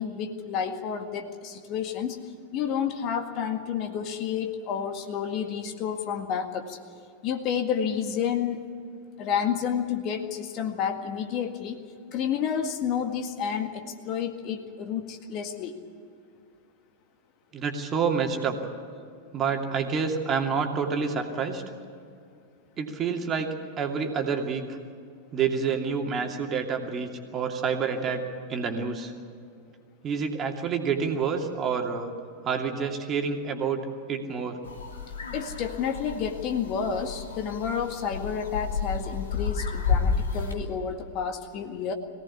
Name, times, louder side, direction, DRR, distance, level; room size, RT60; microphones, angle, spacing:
voice 1, 0.0-2.2 2.5-6.8 7.2-8.6 9.2-11.8 12.1-15.8 35.3-41.9, left 7 dB, 40° left, 5 dB, 1.9 m, -30 dB
voice 2, 17.5-18.6 19.3-21.6 22.8-23.5 23.8-24.6 25.3-28.2 28.5-29.1 30.0-32.1 32.4-33.8 34.1-34.6, right 6 dB, 25° right, 3 dB, 2.7 m, -28 dB
sound 1, 34.6-40.5, left 5 dB, 70° left, 3.0 m, -31 dB
23.0 x 17.5 x 8.6 m, 2.3 s
figure-of-eight pair, 90°, 0 cm